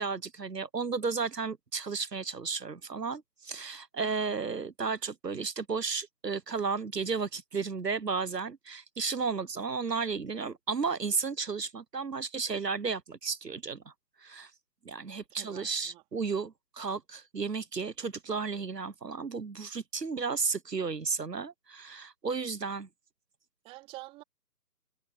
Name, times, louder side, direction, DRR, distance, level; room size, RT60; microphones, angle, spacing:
voice 1, 0.0-13.8 14.2-14.5 14.8-22.9, right 5 dB, 85° right, 1.2 m, -33 dB
voice 2, 15.3-16.0 22.3-22.4 23.6-24.2, right 20 dB, 10° right, 3.1 m, -48 dB
figure-of-eight pair, 150°, 48 cm